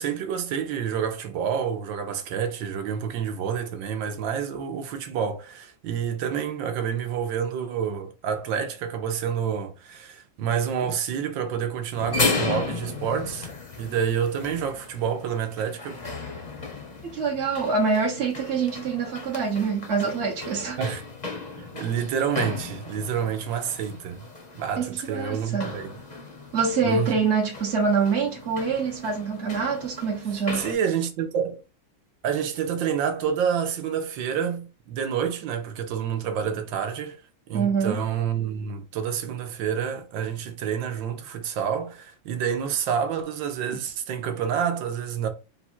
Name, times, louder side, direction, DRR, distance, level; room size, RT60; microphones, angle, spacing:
voice 1, 0.0-13.5 13.8-16.0 20.8-21.0 21.6-24.3 24.5-25.9 26.8-27.2 30.5-31.6 32.2-37.2 37.5-45.3, right 8 dB, 75° right, 1.4 m, -28 dB
sound 1, 11.9-30.7, left 3 dB, 30° left, 0.8 m, -35 dB
voice 2, 17.0-20.8 24.8-25.7 26.5-30.6 37.5-38.0, right 5 dB, 45° right, 1.0 m, -25 dB
4.3 x 2.3 x 4.3 m
omnidirectional pair, 2.2 m